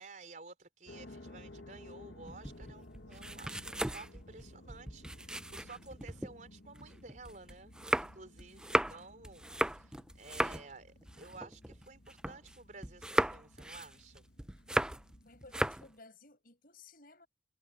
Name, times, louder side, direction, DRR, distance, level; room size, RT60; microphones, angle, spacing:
voice 1, 0.0-7.7 8.0-14.3, right 3 dB, 45° right, 4.7 m, -53 dB
sound 1, 0.9-15.7, left 1 dB, 70° left, 1.9 m, -56 dB
sound 2, 2.3-6.3 6.8-12.6 12.8-15.2 15.4-15.9, right 1 dB, 5° right, 0.4 m, -36 dB
voice 2, 15.2-17.3, left 3 dB, 50° left, 7.3 m, -56 dB
head